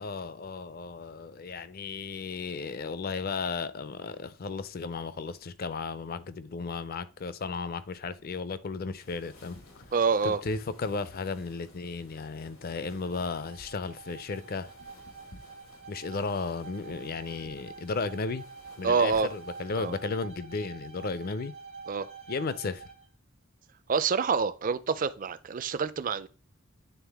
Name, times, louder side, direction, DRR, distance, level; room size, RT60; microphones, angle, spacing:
voice 1, 0.0-9.6 10.2-14.7 15.9-18.4 18.8-21.5 22.3-22.9, left 4 dB, 45° left, 0.5 m, -34 dB
sound 1, 8.9-20.1, left 1 dB, 90° left, 1.8 m, -55 dB
voice 2, 9.9-10.4 18.8-19.3 19.8-19.9 21.9-22.1 23.9-26.3, right 5 dB, 40° right, 0.4 m, -27 dB
Bowed string instrument, 12.6-23.1, right 5 dB, 75° right, 1.3 m, -47 dB
9.2 x 3.6 x 3.4 m
head